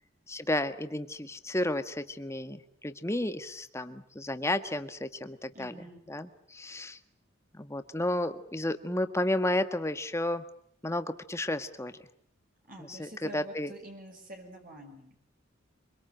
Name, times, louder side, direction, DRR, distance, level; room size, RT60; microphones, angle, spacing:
voice 1, 0.3-5.7 6.1-7.0 7.5-10.4 10.8-12.0 12.9-13.7, left 1 dB, 15° left, 9 dB, 1.6 m, -32 dB
voice 2, 5.5-6.0 12.7-15.2, right 1 dB, 45° right, 3 dB, 5.8 m, -47 dB
25.5 x 24.0 x 9.0 m, 0.62 s
head